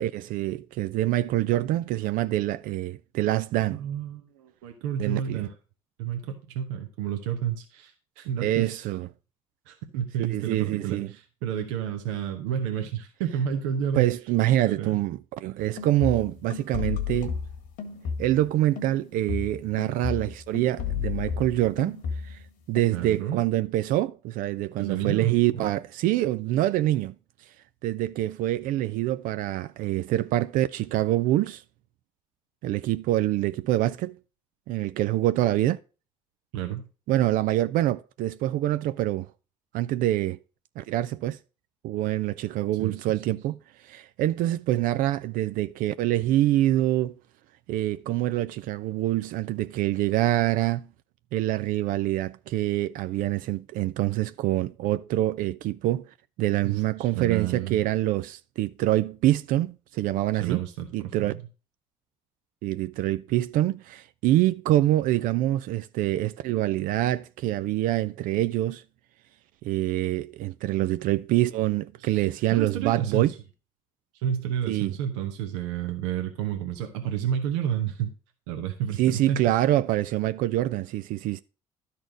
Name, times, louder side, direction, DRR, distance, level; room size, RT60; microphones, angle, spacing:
voice 1, 0.0-3.8 5.0-5.5 8.4-9.1 10.3-11.1 13.9-17.4 18.2-22.4 22.7-27.1 27.8-31.6 32.6-34.2 34.7-35.8 37.1-39.3 39.7-40.4 40.8-41.4 41.8-47.1 47.7-50.9 51.3-56.1 56.4-60.6 60.9-61.3 62.6-68.8 69.6-73.3 74.7-75.0 79.0-81.4, right 14 dB, 65° right, 0.4 m, -25 dB
voice 2, 3.7-5.5 6.0-8.8 9.7-14.1 14.7-15.0 22.9-23.4 24.8-25.7 36.5-36.9 42.8-43.0 56.6-57.8 60.4-61.4 72.0-72.3 72.5-73.3 74.2-78.1 78.5-79.4, right 9 dB, 85° right, 1.0 m, -30 dB
sound 1, 15.6-18.5 18.8-22.5 22.8-23.2, left 7 dB, 70° left, 1.7 m, -33 dB
11.0 x 4.2 x 5.0 m
supercardioid pair, 70°, 15 cm